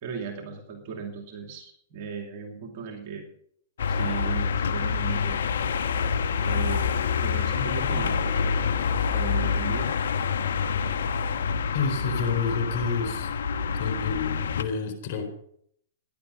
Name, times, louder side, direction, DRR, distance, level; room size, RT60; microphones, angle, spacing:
voice 1, 0.0-3.3 3.9-5.5 6.4-8.5 9.1-9.9, right 5 dB, 50° right, 3 dB, 2.7 m, -36 dB
sound 1, 3.8-14.6, left 6 dB, 75° left, 1.3 m, -27 dB
voice 2, 11.7-13.3 13.7-15.3, left 4 dB, 55° left, 6 dB, 4.3 m, -29 dB
16.0 x 10.5 x 5.6 m, 0.68 s
hypercardioid pair, 120°, 0 cm